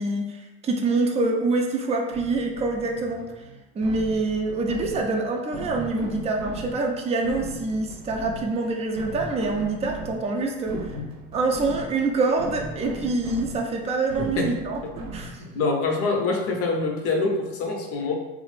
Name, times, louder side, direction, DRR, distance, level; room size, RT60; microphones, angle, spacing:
voice 1, 0.0-3.2 3.8-10.8 11.3-14.8 15.1-15.3, right 3 dB, 20° right, 1 dB, 0.4 m, -25 dB
sound 1, 2.1-15.6, right 2 dB, 60° right, 0.7 m, -38 dB
voice 2, 14.2-14.5 15.4-18.1, left 3 dB, 50° left, 1 dB, 0.7 m, -25 dB
3.0 x 2.0 x 3.1 m, 1.0 s
supercardioid pair, 100°, 30 cm